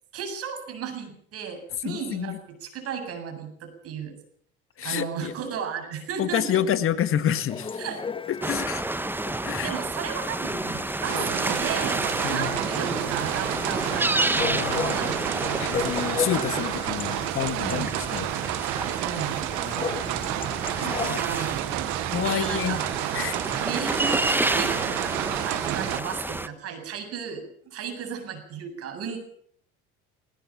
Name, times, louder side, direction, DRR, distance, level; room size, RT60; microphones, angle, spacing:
voice 1, 0.1-4.1 4.8-6.6 7.8-8.0 9.6-15.7 17.6-17.9 19.0-19.4 20.8-22.9 23.5-25.1 25.4-29.2, right 7 dB, 50° right, 5 dB, 8.0 m, -34 dB
voice 2, 1.8-2.4 4.8-5.3 6.2-7.8 8.3-8.8 9.4-9.7 12.2-12.6 14.4-15.1 15.6-18.3 20.8-21.2 22.1-22.8 23.1-23.4, left 9 dB, 45° left, 12 dB, 1.7 m, -28 dB
Chatter / Bark / Livestock farm animals working animals, 7.5-21.1, left 5 dB, 15° left, 1.0 m, -37 dB
sound 1, 8.4-26.5, right 2 dB, 5° right, 1.2 m, -30 dB
sound 2, 11.0-26.0, right 19 dB, 70° right, 1.2 m, -30 dB
19.5 x 18.5 x 7.5 m, 0.63 s
supercardioid pair, 90°, 30 cm